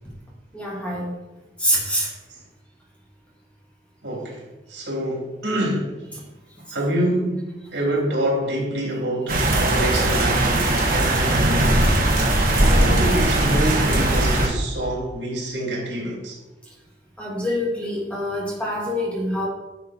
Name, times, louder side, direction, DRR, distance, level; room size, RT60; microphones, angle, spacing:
voice 1, 0.5-1.1 1.6-2.0 17.2-19.5, equal, 5° left, -4 dB, 2.3 m, -25 dB
voice 2, 4.0-4.4 4.7-6.0 6.7-11.8 12.7-16.4, right 1 dB, 80° right, -3 dB, 3.7 m, -26 dB
sound 1, 9.3-14.5, right 1 dB, 55° right, 1.9 m, -19 dB
11.0 x 5.8 x 4.7 m, 1.1 s
head